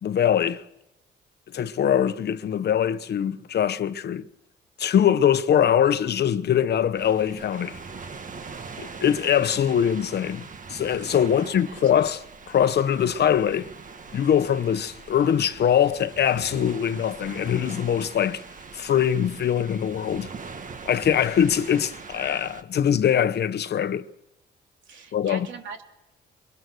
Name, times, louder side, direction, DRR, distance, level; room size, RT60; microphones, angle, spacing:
voice 1, 0.0-0.6 1.5-4.2 4.8-7.8 8.8-10.4 10.7-13.7 14.1-18.4 18.7-20.3 20.9-24.1 25.1-25.5, left 9 dB, 55° left, 1.0 m, -22 dB
sound 1, 7.0-22.6, right 5 dB, 40° right, 1.7 m, -41 dB
voice 2, 11.4-11.8 24.9-25.8, right 5 dB, 70° right, 3.2 m, -41 dB
24.0 x 21.5 x 6.3 m
cardioid pair, 90°, 20 cm